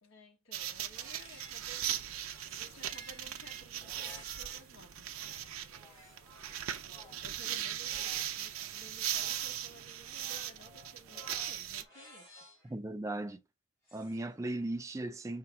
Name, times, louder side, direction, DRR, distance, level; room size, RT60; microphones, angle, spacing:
voice 1, 0.0-2.0 2.6-5.1 5.6-5.8 7.2-12.4, equal, 70° left, 1.2 m, -56 dB
sound 1, 0.5-11.8, right 11 dB, 85° right, 0.6 m, -39 dB
sound 2, 0.9-4.7 5.1-12.7 13.9-14.4, equal, 15° left, 3.1 m, -56 dB
voice 2, 12.7-13.4 13.9-15.4, right 2 dB, 15° right, 0.4 m, -37 dB
5.6 x 2.8 x 3.4 m
head